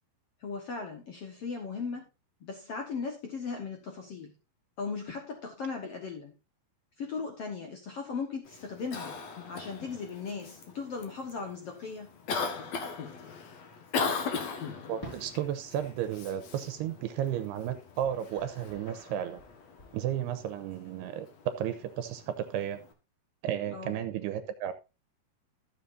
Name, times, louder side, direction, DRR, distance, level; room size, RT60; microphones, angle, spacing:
voice 1, 0.4-2.0 2.4-4.3 4.8-6.3 7.0-9.2 9.5-12.2 23.7-24.0, left 5 dB, 85° left, 1.3 m, -37 dB
Cough, 8.4-22.9, left 5 dB, 55° left, 2.0 m, -40 dB
voice 2, 14.9-19.4 19.9-22.8 23.4-24.7, right 10 dB, 80° right, 2.7 m, -33 dB
Fireworks, 15.0-17.6 18.0-19.9, right 1 dB, 20° left, 5.6 m, -51 dB
14.0 x 7.4 x 2.6 m
omnidirectional pair, 4.9 m